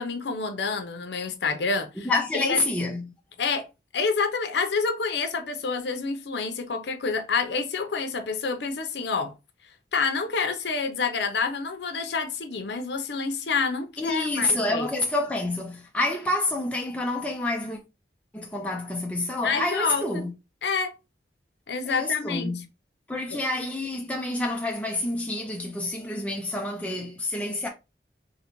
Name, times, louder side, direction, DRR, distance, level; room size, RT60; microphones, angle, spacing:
voice 1, 0.0-2.6 3.4-3.7 3.9-9.3 9.9-14.9 19.4-20.2 20.6-20.9 21.7-22.6 23.3-23.4, left 4 dB, 75° left, 0.6 m, -28 dB
voice 2, 2.0-3.1 14.0-17.8 18.3-20.3 21.9-22.6 23.1-27.7, left 2 dB, 10° left, 0.4 m, -28 dB
3.8 x 2.1 x 3.0 m
head